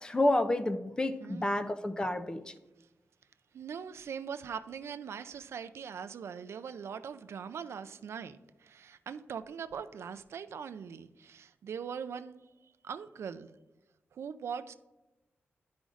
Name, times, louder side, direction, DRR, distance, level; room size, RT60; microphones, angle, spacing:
voice 1, 0.0-2.5, left 1 dB, 20° left, 0.4 m, -29 dB
voice 2, 1.2-1.6 3.5-12.4 12.8-13.5 14.1-14.7, right 7 dB, 70° right, 0.3 m, -41 dB
11.5 x 5.1 x 2.4 m
wide cardioid pair, 160°, 5 cm